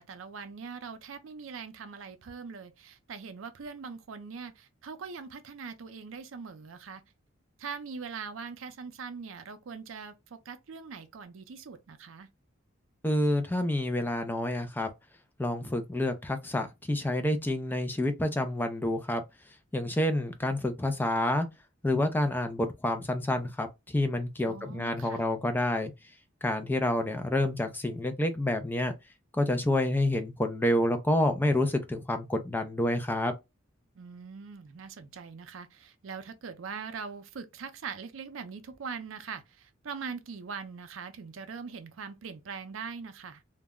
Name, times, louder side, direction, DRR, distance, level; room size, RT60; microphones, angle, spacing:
voice 1, 0.0-7.0 7.6-12.3 24.4-25.3 34.0-43.4, right 5 dB, 70° right, 0.5 m, -42 dB
voice 2, 13.0-14.9 15.4-19.2 19.7-21.5 21.8-25.9 26.4-28.9 29.3-33.3, left 1 dB, 10° left, 0.3 m, -28 dB
2.2 x 2.0 x 3.4 m
head